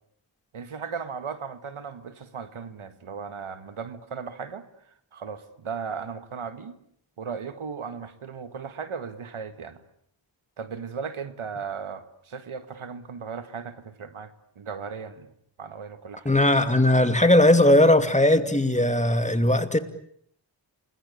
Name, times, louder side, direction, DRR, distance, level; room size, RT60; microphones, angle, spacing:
voice 1, 0.5-4.6 5.1-6.7 7.2-9.8 10.6-15.3 15.6-16.3, right 6 dB, 85° right, 1.9 m, -36 dB
voice 2, 16.2-19.8, left 1 dB, 15° left, 2.6 m, -19 dB
29.0 x 21.0 x 8.6 m
cardioid pair, 50°, 48 cm